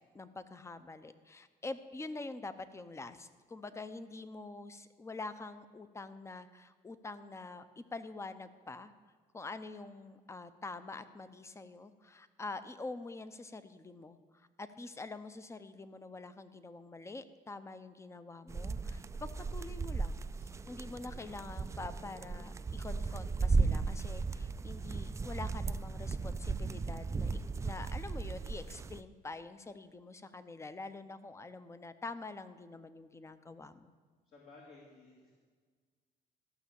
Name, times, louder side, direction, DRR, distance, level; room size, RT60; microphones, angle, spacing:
voice 1, 0.1-8.9 9.3-33.9, left 3 dB, 15° left, 12 dB, 0.6 m, -46 dB
sound 1, 18.5-29.0, right 4 dB, 15° right, 0.3 m, -36 dB
voice 2, 34.3-35.3, left 3 dB, 60° left, -4 dB, 2.4 m, -56 dB
14.0 x 6.2 x 7.0 m, 1.5 s
cardioid pair, 110°, 17 cm